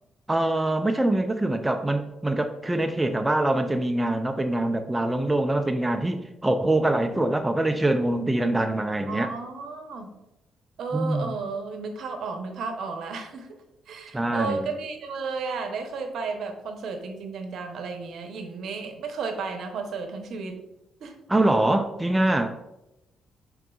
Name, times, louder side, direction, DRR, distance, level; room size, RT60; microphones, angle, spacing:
voice 1, 0.3-9.3 10.9-11.3 14.1-14.7 21.3-22.5, right 1 dB, 10° right, 6 dB, 0.4 m, -24 dB
voice 2, 9.1-10.1 10.8-13.6 13.9-20.6 21.0-21.1, right 4 dB, 70° right, 5 dB, 0.7 m, -33 dB
6.0 x 3.7 x 2.3 m, 0.90 s
cardioid pair, 90°, 0 cm